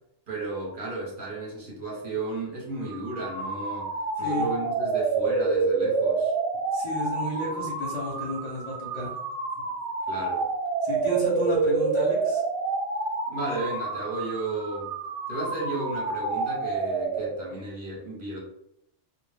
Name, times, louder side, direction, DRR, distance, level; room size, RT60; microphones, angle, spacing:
voice 1, 0.3-6.3 10.1-10.5 13.3-14.9 15.3-18.4, right 2 dB, 50° right, -4 dB, 0.8 m, -33 dB
sound 1, 2.9-17.6, right 4 dB, 90° right, 0.9 m, -28 dB
voice 2, 4.2-4.5 6.7-9.1 10.8-12.4, equal, 45° left, -5 dB, 0.6 m, -32 dB
2.1 x 2.0 x 3.2 m, 0.78 s
omnidirectional pair, 1.2 m